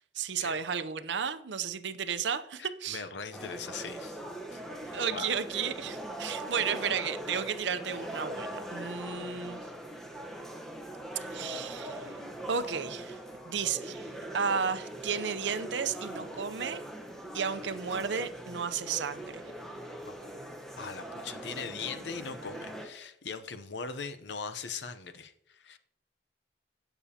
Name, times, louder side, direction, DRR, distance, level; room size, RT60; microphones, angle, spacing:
voice 1, 0.0-3.0 4.9-9.6 11.3-12.2 12.5-13.2 13.5-14.1 14.3-16.8 17.3-19.4, right 6 dB, 75° right, 11 dB, 0.6 m, -33 dB
voice 2, 2.6-4.2 4.5-4.6 4.8-5.3 20.8-25.8, left 5 dB, 65° left, 11 dB, 0.7 m, -40 dB
sound 1, 3.3-22.9, right 1 dB, ahead, 1.1 m, -41 dB
16.5 x 7.0 x 2.8 m, 0.74 s
head